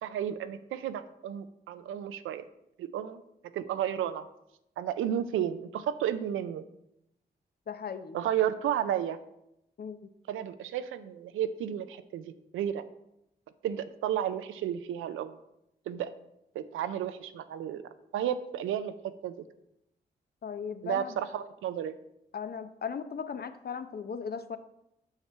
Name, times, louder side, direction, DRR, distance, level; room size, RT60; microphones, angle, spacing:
voice 1, 0.0-2.4 2.8-3.2 3.5-4.3 4.8-6.6 8.1-9.2 10.3-12.9 13.6-15.4 15.9-16.1 16.5-17.8 18.1-19.0 19.2-19.3 20.8-22.0, right 10 dB, 90° right, 11 dB, 0.4 m, -32 dB
voice 2, 7.7-8.2 9.8-10.1 20.4-21.2 22.3-24.6, left 6 dB, 50° left, 11 dB, 0.7 m, -37 dB
5.9 x 5.7 x 4.4 m, 0.81 s
supercardioid pair, 40°, 20 cm